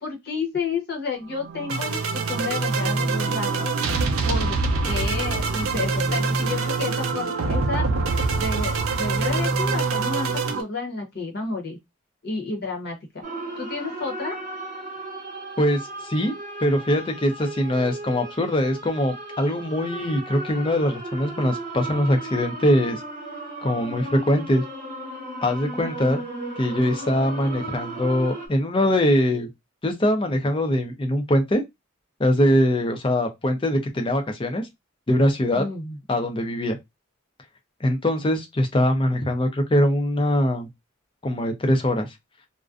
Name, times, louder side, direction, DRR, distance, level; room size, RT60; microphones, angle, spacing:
voice 1, 0.0-3.7 4.2-4.6 4.8-7.9 8.4-10.3 10.6-11.8 12.2-13.2 13.6-14.4 35.5-36.0, left 4 dB, 50° left, 0.9 m, -31 dB
sound 1, 1.3-10.6, right 4 dB, 85° right, 0.4 m, -24 dB
sound 2, 13.2-28.5, right 2 dB, 40° right, 0.7 m, -35 dB
voice 2, 15.6-16.3 16.6-23.0 23.6-24.6 25.4-26.2 26.6-29.5 29.8-31.6 32.2-34.7 35.1-35.6 36.1-36.8 37.8-40.7 41.2-42.1, left 1 dB, 25° left, 0.5 m, -22 dB
2.4 x 2.2 x 2.4 m
head